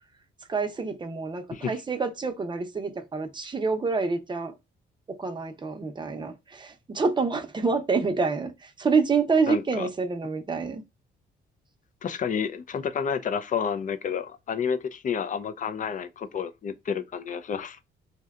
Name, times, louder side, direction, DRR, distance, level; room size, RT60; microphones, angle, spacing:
voice 1, 0.5-4.5 5.2-8.5 8.8-10.8, right 4 dB, 25° right, 0.7 m, -27 dB
voice 2, 9.5-9.9 12.0-17.8, left 7 dB, 40° left, 0.5 m, -30 dB
2.7 x 2.2 x 3.5 m
cardioid pair, 90°, 20 cm